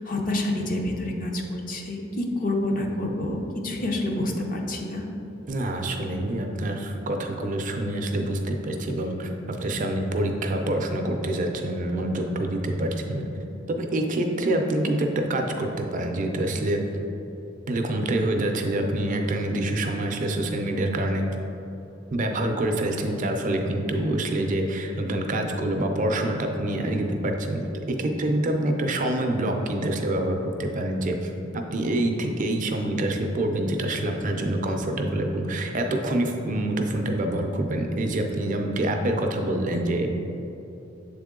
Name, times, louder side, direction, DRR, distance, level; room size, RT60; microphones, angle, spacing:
voice 1, 0.0-5.0, left 1 dB, 45° left, 1 dB, 0.6 m, -28 dB
voice 2, 5.5-13.3 13.7-16.9 17.7-21.3 22.1-40.1, right 1 dB, 40° right, 4 dB, 0.5 m, -26 dB
7.1 x 3.6 x 3.7 m, 3.0 s
head